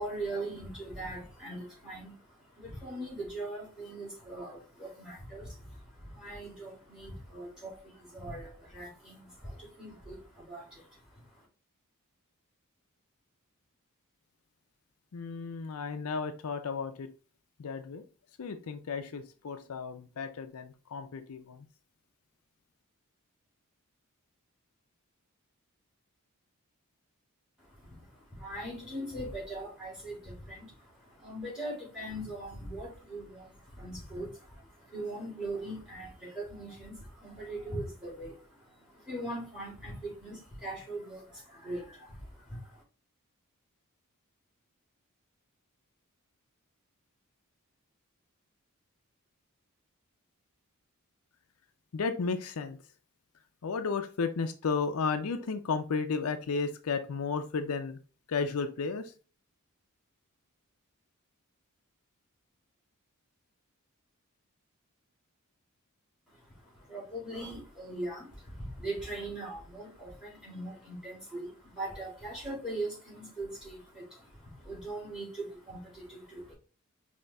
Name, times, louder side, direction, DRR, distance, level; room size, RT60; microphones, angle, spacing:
voice 1, 0.0-11.5 27.6-42.8 66.3-76.5, right 1 dB, 5° right, 2.3 m, -41 dB
voice 2, 15.1-17.1 17.6-18.0 18.4-21.7 51.9-52.8 53.6-58.0 58.3-59.1, left 5 dB, 70° left, 0.5 m, -33 dB
5.3 x 2.8 x 3.4 m
head